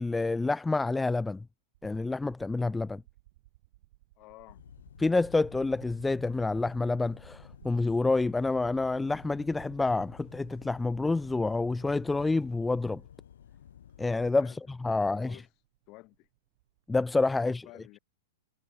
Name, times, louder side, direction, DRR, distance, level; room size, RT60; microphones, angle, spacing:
voice 1, 0.0-1.4 1.8-3.0 5.0-13.0 14.0-15.4 16.9-17.6, left 3 dB, 10° left, 0.4 m, -28 dB
sound 1, 1.7-10.5 11.7-11.8 13.9-14.0 14.2-16.8, right 18 dB, 50° right, 2.1 m, -57 dB
voice 2, 4.2-4.6 14.3-14.6 14.9-15.5 15.9-16.3 17.4-18.0, left 23 dB, 40° left, 4.6 m, -52 dB
sound 2, 4.5-14.3, left 9 dB, 65° left, 4.0 m, -52 dB
figure-of-eight pair, 100°, 0 cm